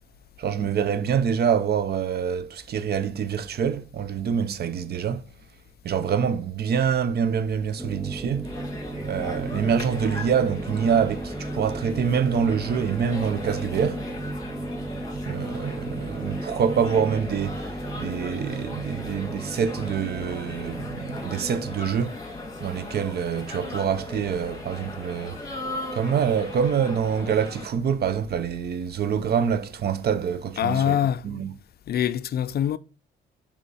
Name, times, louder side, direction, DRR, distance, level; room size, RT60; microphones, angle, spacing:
voice 1, 0.4-5.2 5.8-8.6 9.0-14.0 15.2-22.2 22.6-25.4 25.9-31.0 31.2-31.5, right 7 dB, 55° right, 0.6 m, -26 dB
sound 1, 7.8-21.8, right 2 dB, 10° right, 0.5 m, -35 dB
sound 2, 8.4-27.7, left 2 dB, 20° left, 2.4 m, -38 dB
voice 2, 30.6-31.2 31.9-32.8, left 10 dB, 50° left, 0.4 m, -24 dB
5.3 x 5.0 x 4.1 m
cardioid pair, 90°, 20 cm